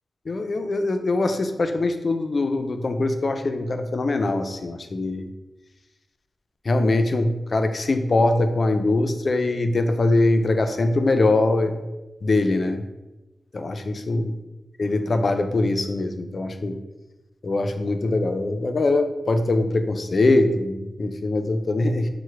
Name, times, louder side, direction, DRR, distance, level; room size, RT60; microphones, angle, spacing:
voice 1, 0.3-5.3 6.6-11.8 12.2-12.9 13.5-14.3 14.8-16.8 17.4-22.1, left 2 dB, 45° left, 7 dB, 0.4 m, -22 dB
4.7 x 2.1 x 4.5 m, 1.0 s
wide cardioid pair, 140°, 0 cm